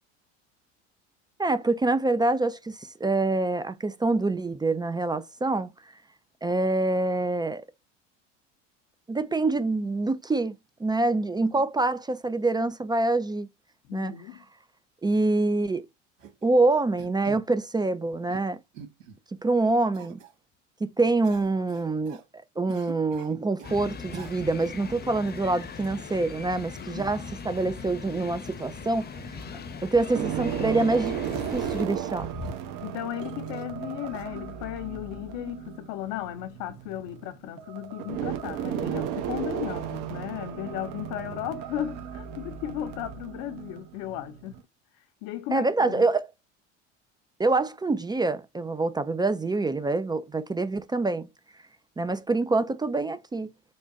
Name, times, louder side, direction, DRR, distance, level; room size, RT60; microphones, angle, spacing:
voice 1, 1.4-5.7 6.4-7.6 9.1-10.5 10.8-13.5 13.9-14.1 15.0-15.9 16.4-18.6 19.4-20.2 21.0-22.2 22.6-29.1 29.8-31.1 31.5-32.3 45.5-46.3 47.4-51.3 52.0-53.5, right 2 dB, 10° right, 0.4 m, -25 dB
voice 2, 13.9-14.4 26.6-27.1 32.8-44.6 44.9-46.0, left 13 dB, 60° left, 0.8 m, -35 dB
sound 1, 16.2-16.5 17.0-17.5 18.0-18.4 18.7-19.2 19.9-20.3 21.2-22.2 22.7-23.8 24.1-24.7 25.3-25.4 25.8-25.9 26.8-26.9 27.5-27.6 27.9-28.0 28.5-28.6 29.1-29.2 29.4-29.5 30.3-30.4 31.2-31.7 32.2-32.8 33.2-33.7 34.1-34.2, right 4 dB, 85° right, 1.9 m, -43 dB
open-air swimming pool, 23.6-31.8, left 5 dB, 25° left, 0.8 m, -40 dB
Ambience - Musical Glitch - Cosmic Drift, 28.7-29.5 30.0-44.6, right 9 dB, 55° right, 1.1 m, -35 dB
3.8 x 2.3 x 3.9 m
hypercardioid pair, 80°, 38 cm